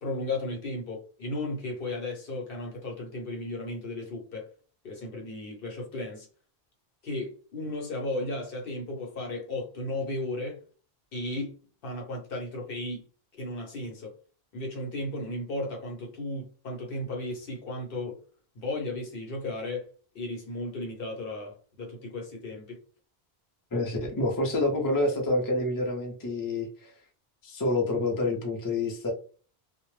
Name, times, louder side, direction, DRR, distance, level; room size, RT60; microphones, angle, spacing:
voice 1, 0.0-4.5 4.8-6.3 7.0-10.6 11.1-11.5 11.8-13.0 13.4-14.1 14.5-18.2 18.5-19.9 20.1-22.8, left 2 dB, 65° left, 0.9 m, -35 dB
voice 2, 23.7-26.9 27.4-29.1, left 2 dB, 25° left, 0.5 m, -28 dB
2.1 x 2.0 x 3.1 m
omnidirectional pair, 1.1 m